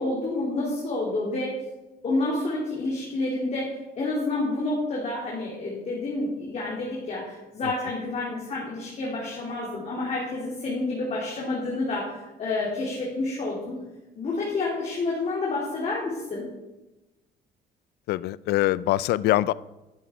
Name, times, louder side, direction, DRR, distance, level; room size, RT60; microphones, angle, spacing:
voice 1, 0.0-1.5 2.0-13.8 14.2-16.5, left 2 dB, 40° left, -5 dB, 3.4 m, -29 dB
voice 2, 18.1-19.5, left 16 dB, 75° left, 20 dB, 0.4 m, -23 dB
12.0 x 8.0 x 5.1 m, 1.0 s
cardioid pair, 110°, 17 cm